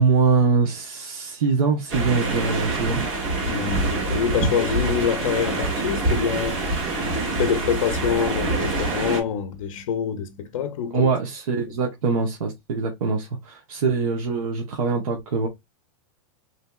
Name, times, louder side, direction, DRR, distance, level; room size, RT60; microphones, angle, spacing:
voice 1, 0.0-3.0 10.9-15.5, right 4 dB, 85° right, 0.9 m, -23 dB
sound 1, 1.9-9.2, right 2 dB, 40° right, 1.2 m, -25 dB
voice 2, 3.4-6.6 7.2-11.1 11.7-11.8, left 7 dB, 75° left, 0.6 m, -26 dB
3.3 x 2.7 x 2.3 m
supercardioid pair, 170°, 17 cm